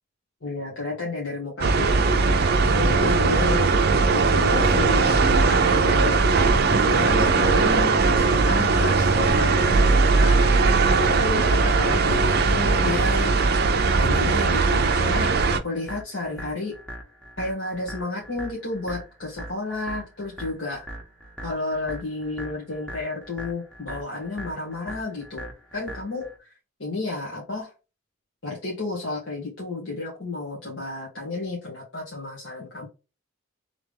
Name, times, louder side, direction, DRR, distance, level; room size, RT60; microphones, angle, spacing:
voice 1, 0.4-2.2 2.7-3.7 4.1-10.4 11.0-13.4 14.0-16.8 17.4-20.9 21.4-26.5 26.8-27.7 28.4-32.9, left 2 dB, 70° left, -3 dB, 1.7 m, -32 dB
sound 1, 1.6-15.6, right 4 dB, 50° right, 0.5 m, -19 dB
sound 2, 10.4-26.4, right 1 dB, 5° left, 1.2 m, -41 dB
3.6 x 3.4 x 3.5 m, 0.29 s
head